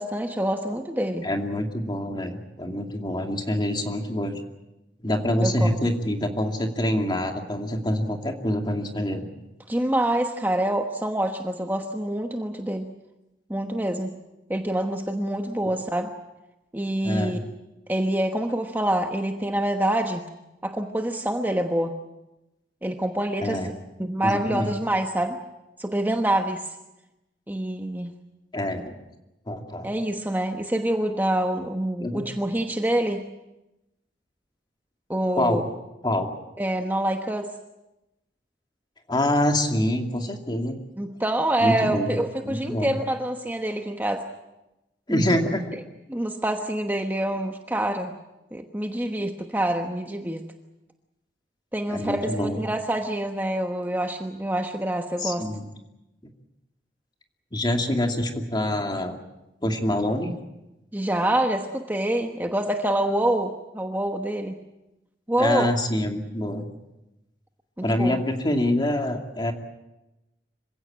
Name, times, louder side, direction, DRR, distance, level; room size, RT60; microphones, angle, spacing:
voice 1, 0.0-1.3 5.4-5.8 9.7-12.9 13.5-14.1 14.5-16.1 16.7-17.4 17.9-20.2 20.6-21.9 22.8-23.7 24.0-25.4 25.8-26.7 27.5-28.1 29.8-33.2 35.1-35.6 36.6-37.5 41.0-44.2 45.1-45.4 46.1-48.1 48.5-50.4 51.7-55.4 60.9-64.6 65.3-65.7 67.8-68.2, right 1 dB, 10° right, 4 dB, 1.1 m, -26 dB
voice 2, 1.2-4.4 5.0-9.3 17.0-17.4 23.4-23.7 24.2-24.7 28.5-28.9 29.5-29.9 32.0-32.2 35.3-35.6 36.0-36.3 39.1-40.7 41.6-42.2 42.4-43.0 45.1-45.8 51.9-52.5 55.2-55.7 57.5-59.2 59.6-60.4 65.4-66.7 67.8-69.5, left 1 dB, 25° left, 4 dB, 2.5 m, -26 dB
26.5 x 16.5 x 8.9 m, 0.96 s
head